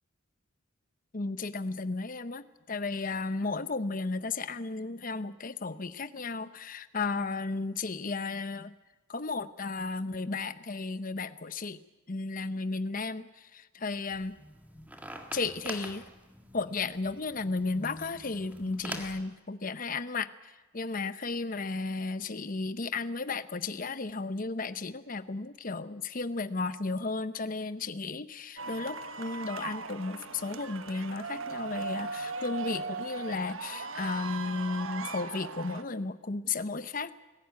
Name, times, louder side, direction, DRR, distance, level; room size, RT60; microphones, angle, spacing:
voice 1, 1.1-8.7 9.1-11.8 12.1-14.4 15.3-16.0 16.5-37.1, left 3 dB, 45° left, 13 dB, 0.8 m, -34 dB
sound 1, 14.1-19.2, equal, 10° right, 1.7 m, -44 dB
sound 2, 28.6-35.8, right 4 dB, 85° right, 1.3 m, -38 dB
22.5 x 15.5 x 9.5 m, 1.2 s
head